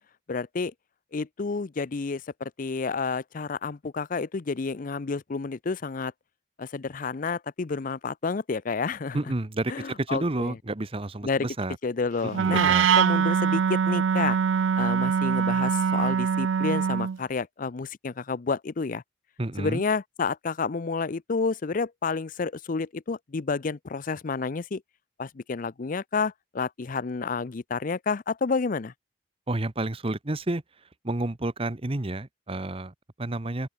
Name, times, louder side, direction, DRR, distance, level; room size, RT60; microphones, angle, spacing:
voice 1, 0.3-0.7 1.1-6.1 6.6-9.2 9.7-10.6 11.2-11.5 11.8-14.4 14.8-19.0 19.6-24.8 25.2-28.9, left 4 dB, 45° left, 0.5 m, -30 dB
voice 2, 9.1-9.7 10.0-11.8 12.4-12.9 19.4-19.8 29.5-30.6 31.0-33.7, right 2 dB, 30° right, 1.0 m, -30 dB
Wind instrument woodwind instrument, 12.3-17.2, right 7 dB, 90° right, 0.4 m, -23 dB
open air
head